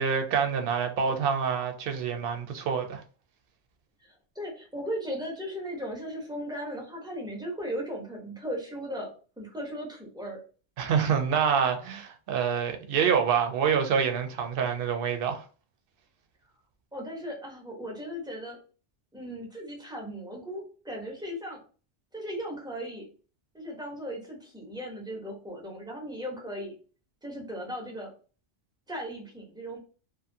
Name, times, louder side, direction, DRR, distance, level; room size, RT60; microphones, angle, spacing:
voice 1, 0.0-3.0 10.8-15.4, right 7 dB, 65° right, 0.7 m, -26 dB
voice 2, 4.0-9.1 9.4-10.4 16.9-18.6 19.1-21.6 22.1-23.1 23.5-26.7 27.2-28.1 28.9-29.8, equal, 5° right, 0.7 m, -37 dB
2.5 x 2.5 x 2.6 m
omnidirectional pair, 1.1 m